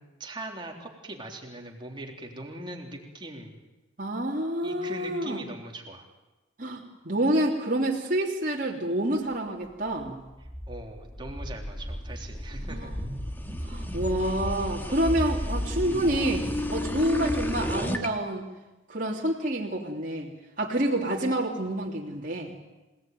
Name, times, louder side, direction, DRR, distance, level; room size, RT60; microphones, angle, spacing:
voice 1, 0.0-3.6 4.6-6.1 10.7-13.0, right 1 dB, 25° right, 1 dB, 3.5 m, -41 dB
voice 2, 4.0-5.4 6.6-10.2 12.7-13.0 13.6-18.4 18.9-20.3 20.6-22.6, right 1 dB, 40° right, -2 dB, 3.2 m, -28 dB
sound 1, 10.0-18.1, left 1 dB, 10° left, 2.0 m, -32 dB
27.5 x 18.5 x 9.4 m, 1.1 s
head